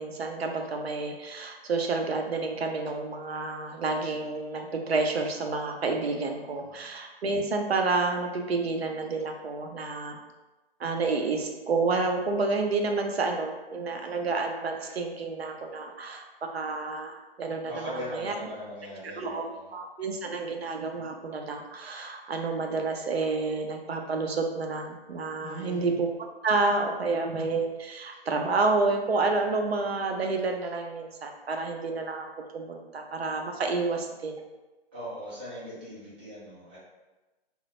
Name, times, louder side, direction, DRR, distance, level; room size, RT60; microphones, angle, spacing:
voice 1, 0.0-10.2 10.8-18.3 19.2-19.4 19.7-26.1 26.4-32.3 32.5-34.4, right 3 dB, 85° right, 3 dB, 0.5 m, -29 dB
voice 2, 17.6-19.7 25.4-25.9 34.9-36.8, equal, 10° right, -10 dB, 0.4 m, -40 dB
2.1 x 2.0 x 2.9 m, 1.1 s
figure-of-eight pair, 140°, 30 cm